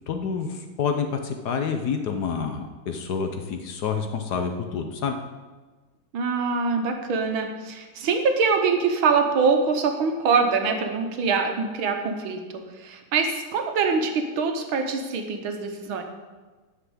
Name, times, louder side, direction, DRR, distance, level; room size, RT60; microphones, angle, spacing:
voice 1, 0.1-5.2, left 6 dB, 60° left, 6 dB, 1.2 m, -28 dB
voice 2, 6.1-16.0, right 5 dB, 80° right, 5 dB, 1.9 m, -24 dB
9.6 x 5.8 x 7.9 m, 1.3 s
omnidirectional pair, 2.2 m